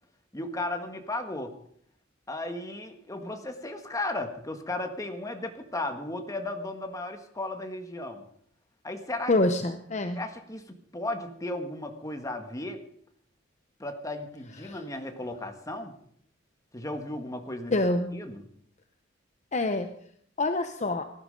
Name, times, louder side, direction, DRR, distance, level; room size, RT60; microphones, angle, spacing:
voice 1, 0.3-1.5 2.3-8.2 8.8-9.3 10.2-12.8 13.8-15.9 16.7-17.7 18.1-18.4, left 2 dB, 15° left, 5 dB, 1.6 m, -35 dB
voice 2, 9.3-10.2 14.6-14.8 17.7-18.2 19.5-19.9 20.4-21.0, left 2 dB, 35° left, 7 dB, 0.8 m, -26 dB
18.0 x 12.0 x 5.2 m, 0.66 s
head